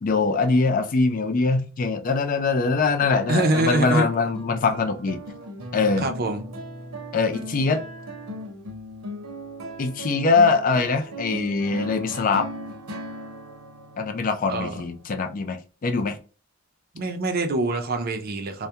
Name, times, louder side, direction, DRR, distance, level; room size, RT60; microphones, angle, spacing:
voice 1, 0.0-5.2 5.7-6.1 7.1-7.9 9.8-12.5 14.0-16.2, left 4 dB, 40° left, 0.3 m, -23 dB
sound 1, 2.6-15.4, equal, 85° right, 0.7 m, -38 dB
voice 2, 3.3-4.1 6.0-6.4 14.5-14.7 16.9-18.7, right 2 dB, 45° right, 0.4 m, -24 dB
2.3 x 2.1 x 2.7 m
head